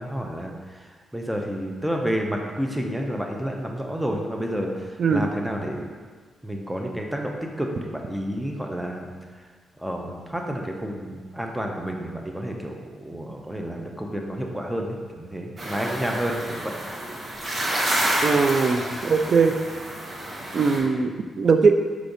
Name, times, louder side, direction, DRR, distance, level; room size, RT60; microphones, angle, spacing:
voice 1, 0.0-6.0 6.4-9.5 9.8-16.8, equal, 10° right, 1 dB, 0.6 m, -30 dB
sound 1, 15.6-20.8, right 1 dB, 40° right, 0.8 m, -29 dB
voice 2, 18.2-19.6 20.5-21.7, right 5 dB, 55° right, 6 dB, 0.3 m, -20 dB
4.7 x 3.3 x 2.6 m, 1.5 s
cardioid pair, 70°, 0 cm